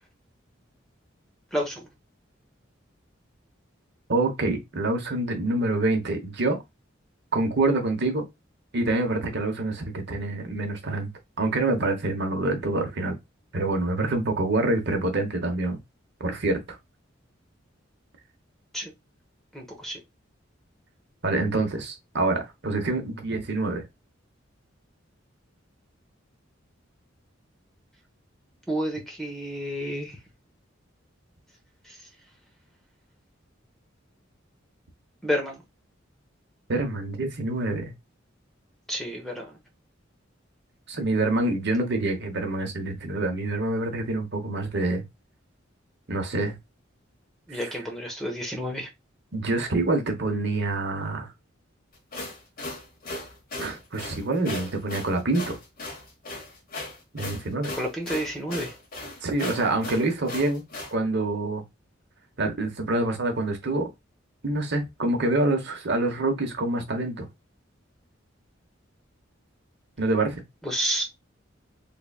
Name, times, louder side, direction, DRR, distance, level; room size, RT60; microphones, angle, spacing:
voice 1, 1.5-1.9 18.7-18.9 19.5-20.0 28.7-30.2 35.2-35.6 38.9-39.6 47.5-48.9 57.7-58.7 70.6-71.0, equal, ahead, 1.1 m, -30 dB
voice 2, 4.1-6.6 7.3-8.2 8.7-11.1 11.4-13.1 13.5-15.8 16.2-16.8 21.2-23.8 36.7-37.9 40.9-45.0 46.1-46.6 47.5-47.8 49.3-51.3 53.6-55.6 57.1-57.7 59.2-60.6 60.9-61.6 62.4-63.9 64.4-67.3 70.0-70.4, right 2 dB, 60° right, 0.9 m, -26 dB
sound 1, 51.9-60.9, left 2 dB, 45° left, 1.4 m, -37 dB
3.9 x 3.4 x 2.3 m
head